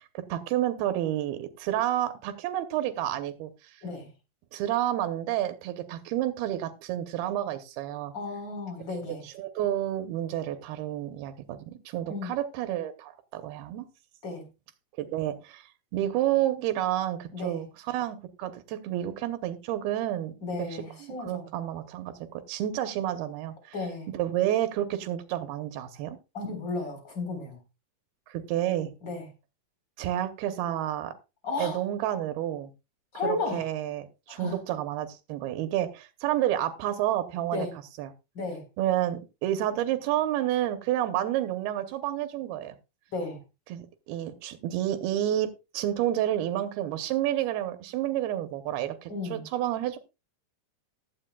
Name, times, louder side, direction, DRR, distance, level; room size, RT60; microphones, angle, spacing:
voice 1, 0.0-3.8 4.5-8.1 9.2-13.9 15.0-20.3 20.7-22.1 22.5-23.7 24.1-26.2 28.3-28.9 30.0-31.1 31.6-32.7 33.2-37.7 38.0-38.1 38.8-42.8 43.7-45.5 45.7-50.0, right 12 dB, 85° right, 9 dB, 2.8 m, -30 dB
voice 2, 8.1-9.3 12.1-12.3 14.2-14.4 17.3-17.6 20.4-21.5 23.7-24.1 26.3-27.6 29.0-29.3 31.4-31.8 33.1-33.7 34.3-34.6 37.5-37.7 38.3-38.6 43.1-43.4 49.1-49.4, left 3 dB, 30° left, 5 dB, 4.4 m, -34 dB
15.5 x 12.0 x 2.3 m, 0.27 s
omnidirectional pair, 4.3 m